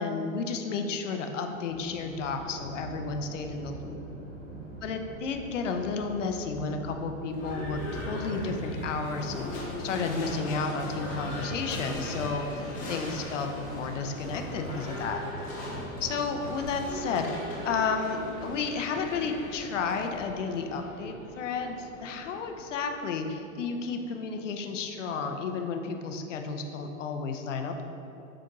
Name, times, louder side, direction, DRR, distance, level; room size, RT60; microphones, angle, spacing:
voice 1, 0.0-4.0 4.8-15.2 16.0-17.3 17.6-27.8, left 4 dB, 60° left, 5 dB, 0.5 m, -32 dB
Thunder, 1.5-18.9, right 1 dB, 10° right, 1.2 m, -45 dB
Livestock farm animals working animals / Bell, 7.3-23.2, left 1 dB, 20° left, 0.7 m, -39 dB
sound 1, 11.8-13.1 13.3-14.1 16.3-17.5 18.3-19.1, equal, 85° left, 1.1 m, -50 dB
7.5 x 2.5 x 2.8 m, 2.9 s
figure-of-eight pair, 105°, 43 cm